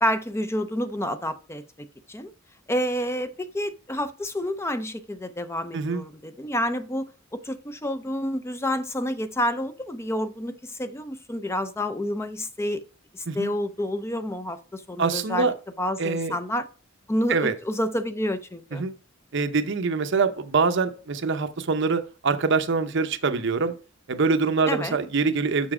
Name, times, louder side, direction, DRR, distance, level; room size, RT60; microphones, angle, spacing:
voice 1, 0.0-2.3 2.7-7.1 7.3-12.8 13.1-15.5 15.8-16.6 17.1-18.8 24.7-25.0, equal, 15° left, 0.5 m, -29 dB
voice 2, 15.0-15.5 16.0-16.3 17.3-17.5 18.7-18.9 19.3-23.7 24.1-25.7, right 4 dB, 65° right, 0.7 m, -24 dB
7.2 x 5.9 x 4.8 m
head